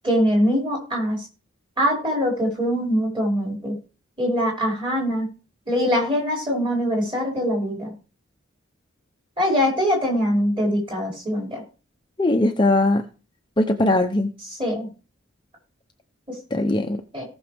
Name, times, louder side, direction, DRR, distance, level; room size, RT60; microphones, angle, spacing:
voice 1, 0.0-1.3 1.8-3.8 4.2-5.3 5.7-7.9 9.4-11.6 14.6-14.9 16.3-16.4 17.1-17.2, equal, 25° right, -3 dB, 5.6 m, -23 dB
voice 2, 12.2-13.0 13.6-14.3 16.5-17.0, left 2 dB, 20° left, 4 dB, 0.7 m, -20 dB
18.0 x 6.1 x 3.5 m, 0.33 s
head